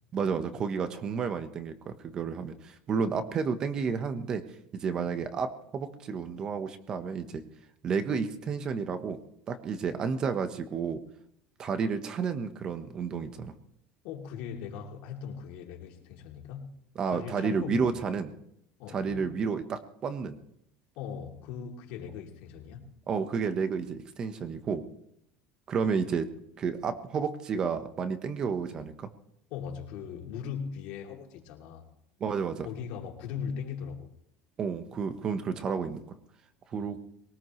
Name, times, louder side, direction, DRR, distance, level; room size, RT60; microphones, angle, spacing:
voice 1, 0.1-4.4 4.7-7.4 7.8-9.2 9.5-11.0 11.6-13.5 16.9-18.3 18.9-20.4 23.1-24.8 25.7-26.3 26.6-29.1 32.2-32.7 34.6-36.0 36.7-37.0, right 5 dB, 30° right, 9 dB, 1.2 m, -31 dB
voice 2, 14.0-16.7 17.1-17.9 18.8-19.3 20.9-22.8 29.5-31.9 32.6-34.1 36.7-37.0, left 7 dB, 60° left, 1 dB, 3.0 m, -39 dB
22.0 x 18.5 x 3.2 m, 0.74 s
cardioid pair, 150°, 3 cm